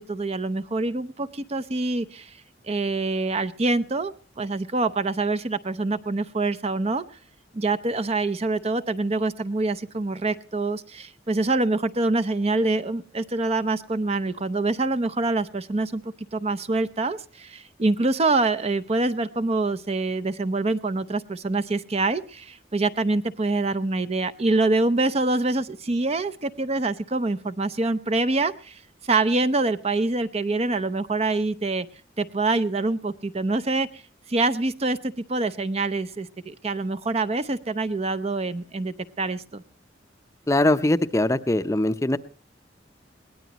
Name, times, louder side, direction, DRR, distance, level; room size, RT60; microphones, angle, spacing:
voice 1, 0.0-2.4 2.6-7.0 7.5-31.9 32.2-34.0 34.3-39.6, right 2 dB, 35° right, 13 dB, 0.7 m, -25 dB
voice 2, 40.5-42.2, left 1 dB, 15° left, 11 dB, 0.6 m, -21 dB
21.5 x 18.0 x 3.0 m, 0.38 s
head